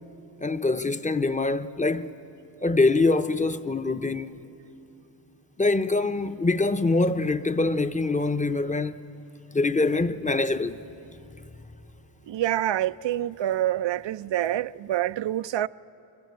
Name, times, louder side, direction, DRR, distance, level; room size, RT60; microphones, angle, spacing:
voice 1, 0.4-2.1 2.6-4.4 5.6-9.0 9.5-10.8, left 3 dB, 15° left, 0.7 m, -24 dB
voice 2, 12.3-15.7, right 12 dB, 60° right, 0.5 m, -26 dB
25.0 x 22.0 x 8.2 m
cardioid pair, 65°, 50 cm